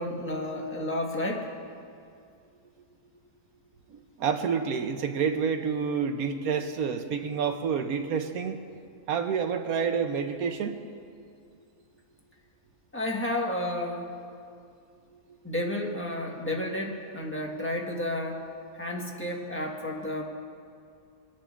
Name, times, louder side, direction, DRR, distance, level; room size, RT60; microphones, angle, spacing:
voice 1, 0.0-1.5 12.9-14.2 15.4-18.4 18.7-20.2, left 1 dB, 10° left, -1 dB, 1.2 m, -31 dB
voice 2, 4.2-8.6 9.1-10.8, right 6 dB, 70° right, 7 dB, 1.1 m, -28 dB
27.5 x 10.0 x 2.5 m, 2.4 s
omnidirectional pair, 1.7 m